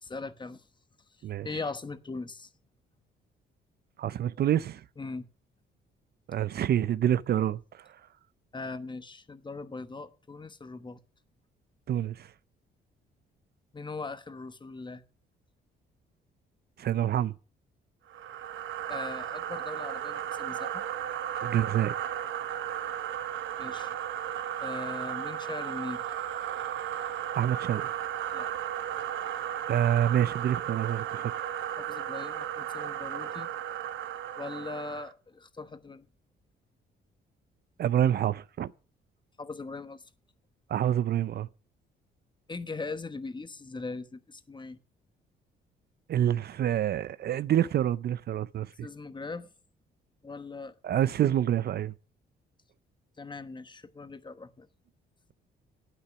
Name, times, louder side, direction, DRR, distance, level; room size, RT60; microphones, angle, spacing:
voice 1, 0.0-0.7 1.4-2.5 5.0-5.2 8.5-11.0 13.7-15.0 18.9-20.8 23.6-23.9 24.6-26.1 28.3-28.5 31.8-33.5 34.4-36.1 39.4-40.0 42.5-44.8 48.8-49.5 50.2-50.8 53.2-54.7, left 3 dB, 25° left, 1.1 m, -40 dB
voice 2, 4.0-4.8 6.3-8.0 11.9-12.3 16.8-17.3 21.4-21.9 27.3-27.9 29.7-31.3 37.8-38.7 40.7-41.5 46.1-48.9 50.8-51.9, right 11 dB, 55° right, 0.5 m, -27 dB
sound 1, 18.1-35.1, right 10 dB, 75° right, 1.0 m, -35 dB
9.9 x 8.8 x 5.9 m
cardioid pair, 90°, 20 cm